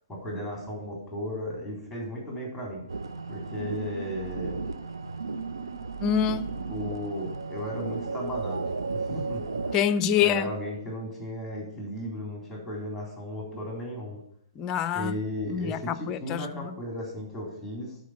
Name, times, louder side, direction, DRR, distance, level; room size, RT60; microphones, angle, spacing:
voice 1, 0.1-2.8 3.3-4.6 6.7-9.8 10.2-14.2 14.9-18.0, equal, ahead, 3.9 m, -35 dB
sound 1, 2.9-9.8, right 4 dB, 80° right, 0.7 m, -34 dB
voice 2, 6.0-6.6 9.7-10.5 14.6-15.1 15.5-16.7, left 9 dB, 25° left, 0.5 m, -26 dB
11.5 x 4.4 x 6.2 m
hypercardioid pair, 130°, 2 cm